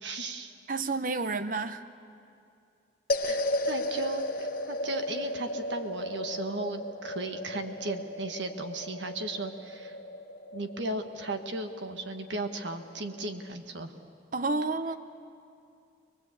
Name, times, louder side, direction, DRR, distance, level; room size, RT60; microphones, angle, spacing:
voice 1, 0.0-0.5 3.2-9.9 10.5-13.9, right 2 dB, 80° right, 6 dB, 1.5 m, -36 dB
voice 2, 0.7-1.8 14.3-15.0, right 3 dB, 45° right, 11 dB, 0.8 m, -30 dB
sound 1, 3.1-13.5, left 1 dB, 50° left, 1.1 m, -35 dB
23.0 x 20.5 x 8.4 m, 2.4 s
head